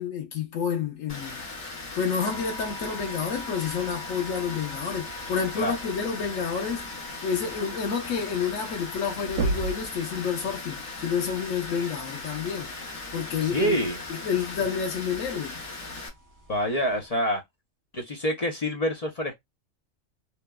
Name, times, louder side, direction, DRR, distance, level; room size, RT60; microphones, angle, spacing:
voice 1, 0.0-1.4 1.9-6.9 7.2-12.7 13.1-13.8 14.1-15.6, left 6 dB, 85° left, 1.2 m, -29 dB
Water, 1.1-16.1, left 3 dB, 65° left, 1.3 m, -38 dB
sound 1, 2.2-17.1, right 1 dB, 20° right, 0.5 m, -48 dB
sound 2, 8.9-9.0 9.3-9.9 11.6-11.7 13.6-13.7 14.6-14.7, right 3 dB, 70° right, 0.9 m, -28 dB
voice 2, 13.4-14.0 16.5-17.4 17.9-19.4, equal, 40° left, 0.6 m, -26 dB
3.1 x 2.1 x 2.2 m
omnidirectional pair, 1.3 m